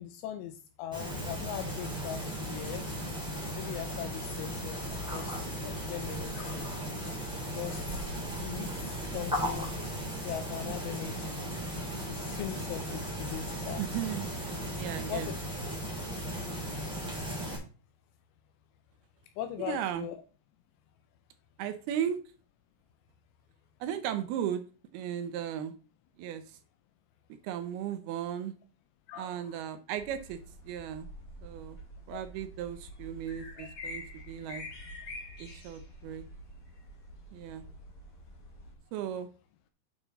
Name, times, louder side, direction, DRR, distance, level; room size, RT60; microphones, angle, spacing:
voice 1, 0.0-2.8 3.5-5.3 5.6-7.2 7.5-8.2 8.4-9.7 10.2-11.5 12.0-13.8 15.1-15.4 19.4-20.2 29.1-29.6 32.1-32.2 33.6-33.7, left 11 dB, 85° left, 9 dB, 2.8 m, -40 dB
sound 1, 0.9-17.6, equal, ahead, 3.0 m, -36 dB
voice 2, 13.8-14.5 14.8-15.3 19.6-20.1 21.6-22.2 23.8-24.6 24.9-25.7 26.2-26.6 27.3-28.5 29.2-30.4 30.6-31.1 31.4-31.8 32.1-34.6 35.4-36.2 37.3-37.6 38.9-39.3, right 10 dB, 80° right, 8 dB, 2.4 m, -36 dB
sound 2, 30.0-38.7, left 1 dB, 40° left, 2.4 m, -46 dB
8.9 x 6.0 x 4.0 m, 0.35 s
omnidirectional pair, 5.1 m